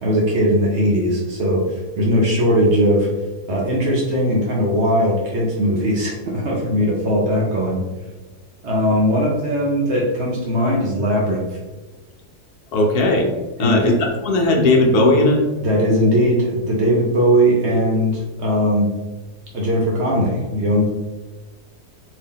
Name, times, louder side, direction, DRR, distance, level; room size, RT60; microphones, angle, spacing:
voice 1, 0.0-3.1 3.5-7.8 8.6-11.4 13.6-14.0 15.6-18.9 19.5-21.0, equal, 60° right, -3 dB, 0.7 m, -19 dB
voice 2, 12.7-13.3 13.6-15.4, left 2 dB, 75° left, 2 dB, 1.1 m, -16 dB
2.8 x 2.7 x 3.6 m, 1.2 s
omnidirectional pair, 1.7 m